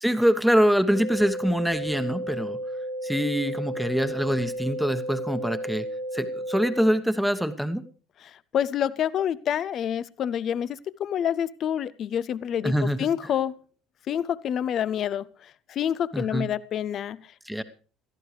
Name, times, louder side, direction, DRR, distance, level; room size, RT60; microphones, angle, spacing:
voice 1, 0.0-2.6 3.0-5.9 6.1-7.8 12.6-13.1 16.1-16.5 17.5-17.6, equal, ahead, 9 dB, 1.2 m, -24 dB
sound 1, 0.9-6.9, right 1 dB, 85° left, 6.9 m, -33 dB
voice 2, 8.2-13.6 14.1-17.3, left 9 dB, 45° left, 18 dB, 0.6 m, -28 dB
21.5 x 14.0 x 3.3 m, 0.40 s
figure-of-eight pair, 60°, 0 cm